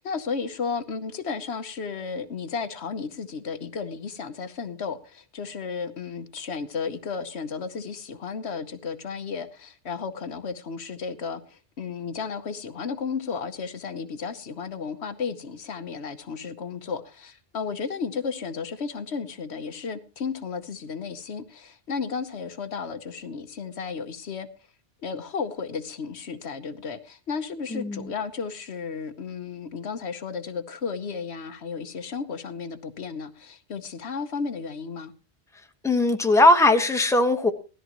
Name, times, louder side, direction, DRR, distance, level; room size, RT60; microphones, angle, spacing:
voice 1, 0.0-24.5 25.0-35.1, left 5 dB, 70° left, 1.2 m, -33 dB
voice 2, 27.7-28.1 35.8-37.5, left 2 dB, 5° left, 1.1 m, -19 dB
17.5 x 13.5 x 3.0 m
omnidirectional pair, 1.1 m